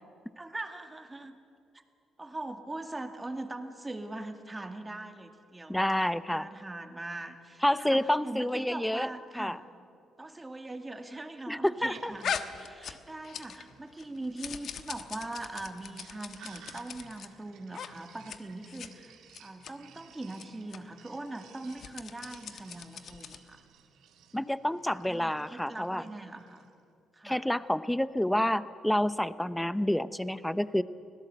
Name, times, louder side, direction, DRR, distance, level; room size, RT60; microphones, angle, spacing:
voice 1, 0.4-1.4 2.2-5.8 6.3-9.6 10.2-12.3 12.6-23.6 24.4-24.6 25.0-26.7 27.1-27.4 28.4-28.5, right 2 dB, 15° right, 6 dB, 2.1 m, -41 dB
voice 2, 5.7-6.5 7.6-9.1 9.4-9.6 11.5-12.1 24.3-26.0 27.2-30.8, left 1 dB, 5° left, 15 dB, 0.7 m, -28 dB
Sink (filling or washing), 11.7-26.7, right 7 dB, 85° right, 2.2 m, -57 dB
sound 1, 12.2-13.7 14.0-17.3 17.7-17.9 18.2-18.4 18.7-18.9 19.3-19.7 20.3-20.4 20.7-20.8 21.6-23.5, left 7 dB, 60° left, 1.2 m, -40 dB
24.5 x 17.0 x 8.0 m, 2.5 s
cardioid pair, 90°, 0 cm